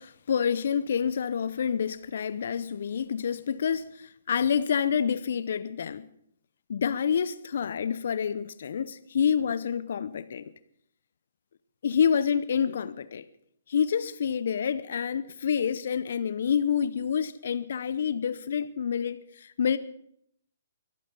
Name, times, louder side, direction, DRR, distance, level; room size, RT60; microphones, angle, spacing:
voice 1, 0.0-6.1 6.7-10.5 11.8-13.2 13.7-19.8, left 7 dB, 60° left, 0.7 m, -28 dB
23.0 x 8.5 x 5.3 m
figure-of-eight pair, 130°, 0 cm